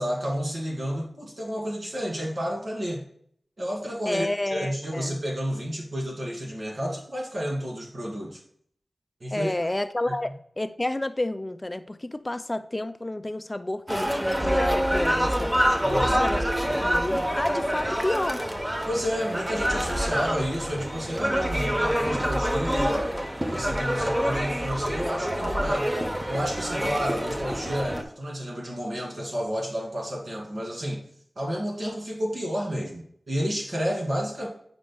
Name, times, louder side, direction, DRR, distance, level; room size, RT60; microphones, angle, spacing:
voice 1, 0.0-3.0 3.6-8.4 9.2-9.5 15.8-16.3 16.6-16.8 18.9-23.1 23.4-25.9 26.3-31.0 31.4-34.5, equal, 75° right, -2 dB, 2.4 m, -31 dB
voice 2, 4.1-5.2 9.3-15.5 15.9-16.4 16.8-18.4, left 1 dB, 30° left, 10 dB, 0.4 m, -30 dB
sound 1, 13.9-28.0, equal, 20° right, 0.8 m, -26 dB
9.1 x 5.1 x 2.2 m, 0.62 s
wide cardioid pair, 70°, 0 cm